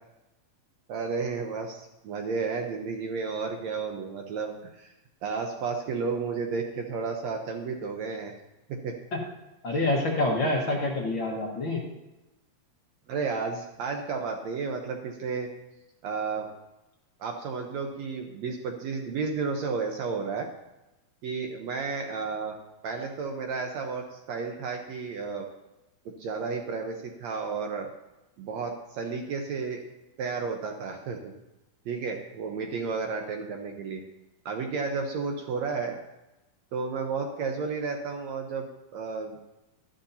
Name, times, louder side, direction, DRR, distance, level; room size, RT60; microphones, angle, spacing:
voice 1, 0.9-4.9 5.2-8.4 8.7-9.0 9.7-9.8 13.1-15.5 16.0-16.5 17.2-20.5 21.2-22.5 22.8-25.5 26.1-27.9 28.4-29.8 30.2-31.3 31.9-34.0 34.5-36.0 36.7-39.4, right 5 dB, 70° right, 3 dB, 1.8 m, -32 dB
voice 2, 9.6-11.8, left 2 dB, 55° left, -1 dB, 1.4 m, -27 dB
13.0 x 11.5 x 2.7 m, 0.98 s
omnidirectional pair, 4.0 m